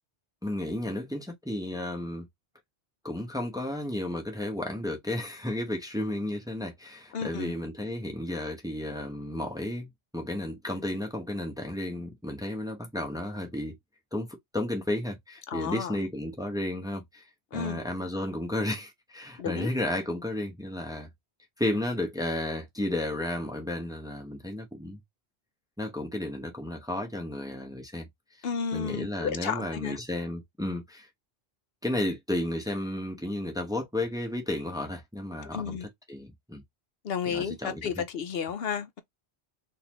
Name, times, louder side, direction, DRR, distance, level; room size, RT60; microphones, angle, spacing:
voice 1, 0.4-2.3 3.0-9.9 10.1-13.7 14.1-14.3 14.5-17.3 17.5-21.1 21.6-25.0 25.8-28.1 28.4-28.5 28.7-31.1 31.8-36.6 37.3-38.0, left 1 dB, 5° right, 0.9 m, -33 dB
voice 2, 7.1-7.5 15.5-16.0 17.5-17.8 19.4-19.7 28.4-30.0 35.4-35.9 37.0-39.0, left 7 dB, 70° left, 0.8 m, -32 dB
3.9 x 2.7 x 3.0 m
omnidirectional pair, 1.0 m